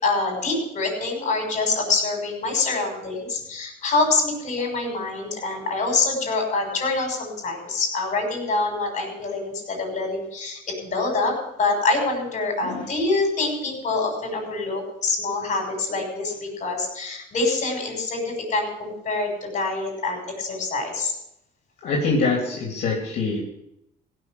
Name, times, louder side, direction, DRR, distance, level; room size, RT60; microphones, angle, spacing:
voice 1, 0.0-21.2, left 3 dB, 45° left, 2 dB, 6.0 m, -25 dB
voice 2, 21.8-23.4, left 3 dB, 65° left, -2 dB, 3.2 m, -24 dB
16.5 x 6.7 x 7.9 m, 0.79 s
cardioid pair, 110°, 17 cm